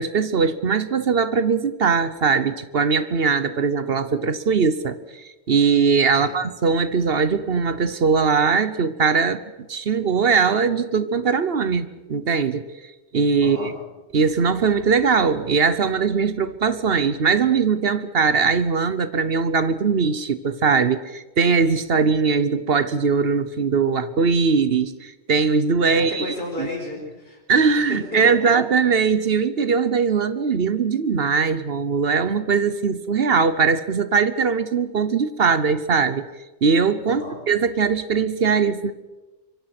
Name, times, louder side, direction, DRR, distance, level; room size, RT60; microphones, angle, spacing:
voice 1, 0.0-9.4 9.7-12.6 13.1-13.7 14.1-26.2 26.6-26.7 27.5-36.3 36.6-37.2 37.5-38.9, right 5 dB, 60° right, 13 dB, 1.2 m, -20 dB
voice 2, 13.4-13.8 25.9-27.4 27.9-28.5 37.1-37.5, left 1 dB, 55° left, 0 dB, 4.6 m, -33 dB
25.0 x 22.5 x 6.0 m, 1.1 s
omnidirectional pair, 1.2 m